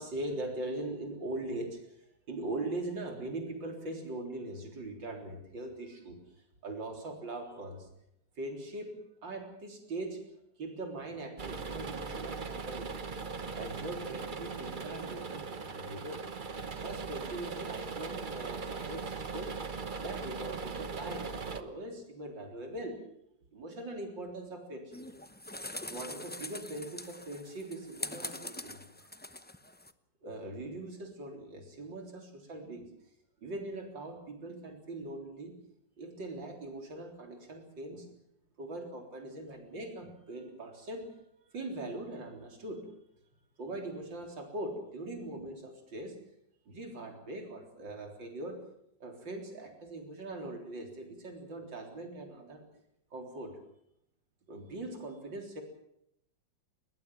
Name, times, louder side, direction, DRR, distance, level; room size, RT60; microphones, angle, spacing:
voice 1, 0.0-2.0 2.3-6.2 6.6-7.9 8.4-10.3 10.6-13.1 13.5-16.2 16.7-19.6 20.0-23.0 23.5-25.0 25.9-28.8 30.2-32.9 33.4-35.6 36.0-38.1 38.6-41.1 41.5-42.9 43.6-46.2 46.7-48.6 49.0-52.7 53.1-53.6 54.5-55.6, right 2 dB, 80° right, 3 dB, 4.5 m, -41 dB
sound 1, 11.4-21.6, right 4 dB, 30° right, 1.1 m, -39 dB
sound 2, 24.9-29.9, left 1 dB, 15° left, 0.4 m, -43 dB
22.0 x 19.5 x 7.7 m, 0.75 s
omnidirectional pair, 2.0 m